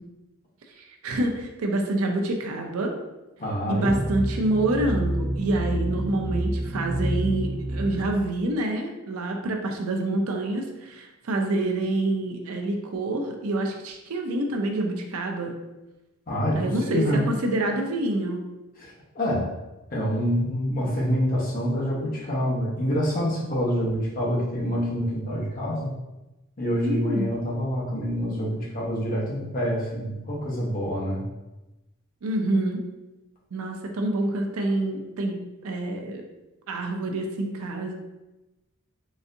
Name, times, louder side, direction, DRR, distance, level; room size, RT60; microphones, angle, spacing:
voice 1, 0.8-2.9 3.7-15.5 16.5-18.4 26.8-27.3 32.2-32.8 33.5-35.4 35.6-36.2 36.7-37.9, right 2 dB, 80° right, 3 dB, 0.5 m, -27 dB
voice 2, 3.4-4.2 16.3-17.4 18.8-19.5 19.9-25.9 26.6-31.2, equal, 40° left, -5 dB, 0.9 m, -26 dB
sound 1, 3.9-8.1, right 1 dB, 45° right, 1.2 m, -28 dB
3.9 x 2.5 x 2.6 m, 1.0 s
head